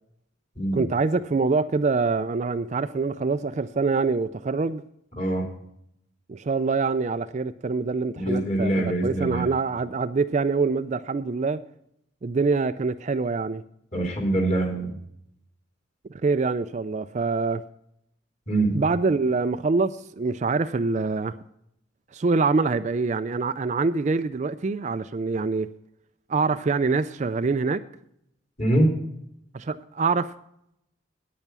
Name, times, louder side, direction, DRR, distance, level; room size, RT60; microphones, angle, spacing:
voice 1, 0.7-4.8 6.3-8.7 9.0-11.6 12.2-13.6 16.1-17.6 18.7-21.4 22.1-25.7 26.3-27.8 29.5-30.3, right 4 dB, 35° right, 0.4 m, -25 dB
voice 2, 8.2-9.4 13.9-14.9 18.5-18.7 28.6-28.9, right 1 dB, 35° left, 3.0 m, -24 dB
9.4 x 8.9 x 6.0 m
head